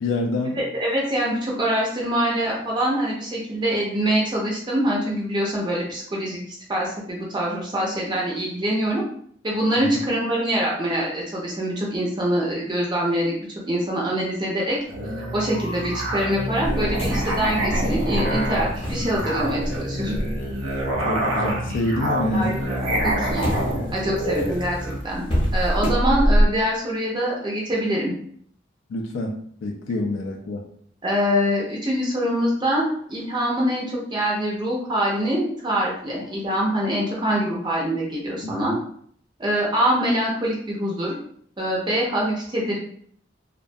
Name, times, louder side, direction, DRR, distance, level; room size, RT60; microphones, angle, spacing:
voice 1, 0.0-0.6 9.8-9.9 21.1-22.5 28.9-29.3 29.6-30.6 38.4-38.8, left 2 dB, 80° left, 2 dB, 0.4 m, -26 dB
voice 2, 0.5-6.4 6.7-9.0 9.4-13.3 13.7-14.8 15.2-20.2 22.3-23.5 23.9-24.8 25.0-25.2 25.5-28.1 31.0-38.8 39.4-41.2 41.6-42.8, equal, 25° right, -3 dB, 0.4 m, -24 dB
Musical instrument, 14.9-25.0, right 1 dB, 80° right, 0.6 m, -27 dB
sound 1, 16.6-21.8 22.1-26.5, equal, 25° left, 0.6 m, -26 dB
2.2 x 2.1 x 2.5 m, 0.62 s
head